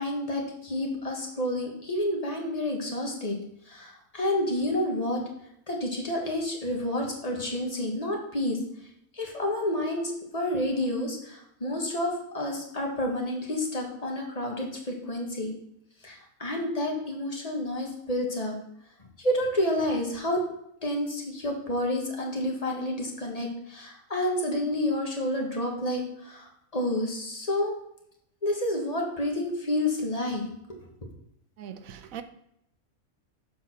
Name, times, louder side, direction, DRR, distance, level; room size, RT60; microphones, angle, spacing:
voice 1, 0.0-3.4 3.7-5.2 5.7-8.6 9.1-15.5 16.0-18.6 19.2-20.4 20.8-27.7 28.4-30.4, left 1 dB, 30° left, 1.6 m, -29 dB
voice 2, 31.6-32.2, right 9 dB, 80° right, 1.1 m, -40 dB
7.2 x 4.1 x 5.9 m
omnidirectional pair, 1.4 m